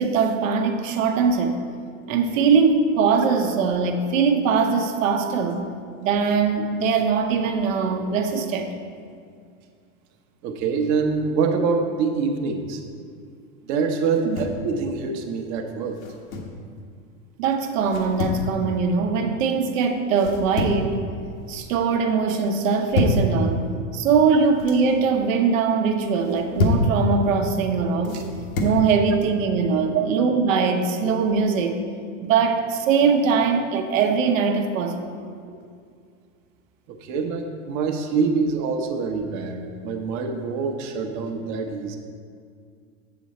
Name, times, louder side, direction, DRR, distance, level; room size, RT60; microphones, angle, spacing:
voice 1, 0.0-1.6 2.1-5.6 6.0-8.7 17.4-21.0 21.5-23.7 23.9-28.2 28.6-31.8 32.2-35.2, right 5 dB, 70° right, 5 dB, 1.0 m, -21 dB
voice 2, 10.4-12.8 13.6-16.0 28.1-28.2 29.9-30.0 36.9-42.0, right 5 dB, 45° right, 4 dB, 1.0 m, -25 dB
sound 1, 14.1-14.6 15.9-16.6 17.9-18.4 20.1-20.9 21.3-21.8 22.6-23.3 24.3-24.8 26.2-26.9 28.0-28.8, left 2 dB, 85° left, 1.4 m, -27 dB
7.5 x 7.0 x 4.1 m, 2.2 s
supercardioid pair, 130°, 40 cm